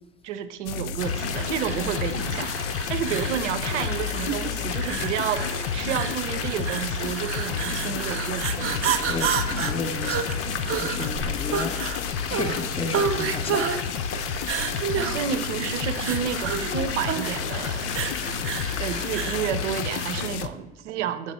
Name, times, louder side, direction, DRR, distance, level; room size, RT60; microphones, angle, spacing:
voice 1, 0.2-2.5 2.9-5.5 5.7-9.0 15.0-17.9 18.8-21.3, right 9 dB, 75° right, 0.6 m, -30 dB
sound 1, 0.7-20.5, left 7 dB, 75° left, 0.5 m, -31 dB
sound 2, 1.0-20.3, left 5 dB, 40° left, 0.9 m, -35 dB
sound 3, 1.6-19.5, right 7 dB, 40° right, 0.7 m, -30 dB
voice 2, 9.1-11.9 12.2-13.8, left 3 dB, 15° left, 0.6 m, -33 dB
7.5 x 3.4 x 5.4 m
hypercardioid pair, 65°, 36 cm